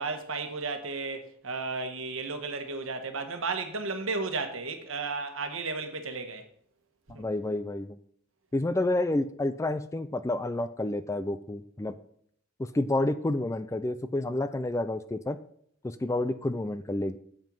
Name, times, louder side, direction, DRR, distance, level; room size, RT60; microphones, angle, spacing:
voice 1, 0.0-6.5 7.1-7.2, right 4 dB, 65° right, 1.3 m, -34 dB
voice 2, 7.2-8.0 8.5-11.9 12.7-15.4 15.8-17.2, left 2 dB, 15° left, 0.3 m, -29 dB
7.6 x 7.5 x 5.4 m
head